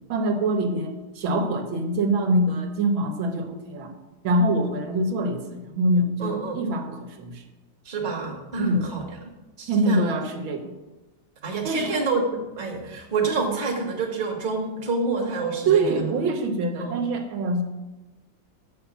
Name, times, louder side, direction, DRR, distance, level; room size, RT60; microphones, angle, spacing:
voice 1, 0.1-3.9 4.2-7.4 8.6-8.9 9.7-10.7 11.6-12.0 15.7-17.6, right 1 dB, 80° right, 5 dB, 1.7 m, -24 dB
voice 2, 6.2-6.6 7.8-9.0 9.6-10.1 11.4-16.1 16.8-17.0, right 4 dB, 25° right, 1 dB, 1.3 m, -28 dB
7.0 x 5.9 x 7.0 m, 1.1 s
omnidirectional pair, 2.1 m